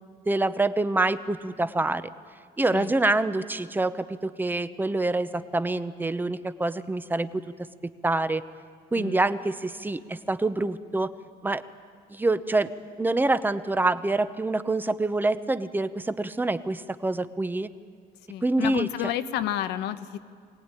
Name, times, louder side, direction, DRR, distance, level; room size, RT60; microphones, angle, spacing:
voice 1, 0.3-2.1 2.6-7.4 7.8-8.4 8.9-11.1 11.4-11.6 12.1-12.7 13.0-17.7 18.4-18.9, right 2 dB, 10° right, 12 dB, 0.9 m, -26 dB
voice 2, 18.3-20.2, left 12 dB, 85° left, 10 dB, 1.2 m, -30 dB
24.0 x 18.0 x 9.8 m, 2.1 s
cardioid pair, 110°, 17 cm